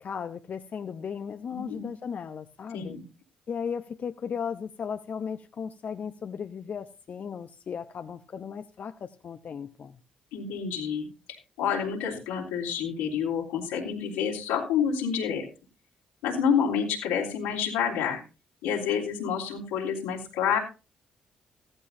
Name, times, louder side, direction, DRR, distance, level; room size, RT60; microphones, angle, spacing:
voice 1, 0.0-3.0 3.5-10.0, left 7 dB, 55° left, 7 dB, 0.8 m, -36 dB
voice 2, 1.5-1.9 2.7-3.0 10.3-15.5 16.2-18.2 18.6-20.6, left 7 dB, 90° left, -2 dB, 3.5 m, -28 dB
15.5 x 14.5 x 2.7 m, 0.32 s
hypercardioid pair, 50°, 3 cm